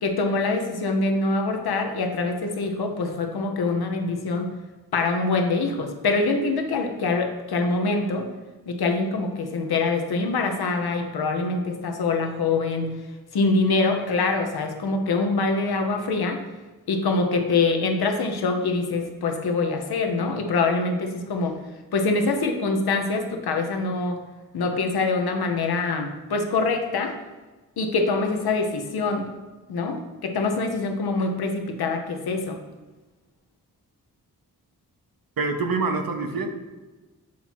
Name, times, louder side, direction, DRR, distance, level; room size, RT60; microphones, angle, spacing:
voice 1, 0.0-4.5 4.9-8.3 8.7-13.0 13.3-16.4 16.9-21.6 21.9-24.2 24.5-27.1 27.8-29.3 29.7-32.6, left 3 dB, 85° left, 4 dB, 0.8 m, -24 dB
voice 2, 35.4-36.5, right 3 dB, 70° right, 5 dB, 0.8 m, -25 dB
7.4 x 2.9 x 4.3 m, 1.2 s
cardioid pair, 40°, 37 cm